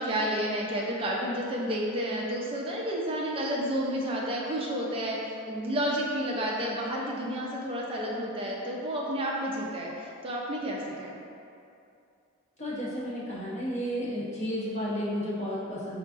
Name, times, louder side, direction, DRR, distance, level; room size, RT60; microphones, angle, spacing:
voice 1, 0.0-11.2, equal, 25° right, -3 dB, 0.4 m, -31 dB
voice 2, 12.6-16.0, equal, 35° left, -8 dB, 0.8 m, -32 dB
4.6 x 2.5 x 2.4 m, 2.5 s
head